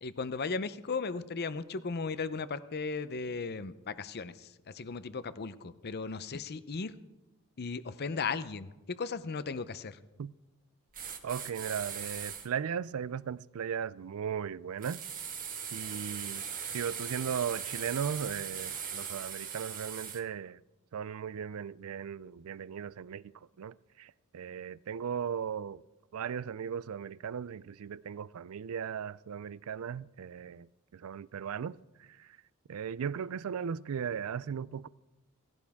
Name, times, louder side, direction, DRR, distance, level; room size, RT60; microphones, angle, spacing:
voice 1, 0.0-4.3 4.7-6.9 7.6-8.7 9.0-10.0, left 4 dB, 50° left, 0.6 m, -36 dB
sound 1, 10.9-12.5 14.8-20.2, right 7 dB, 40° right, 1.4 m, -39 dB
voice 2, 11.2-15.1 15.7-16.5 16.7-20.6 20.9-25.8 26.1-32.4 32.7-34.9, right 7 dB, 70° right, 0.4 m, -37 dB
17.0 x 16.0 x 3.6 m
head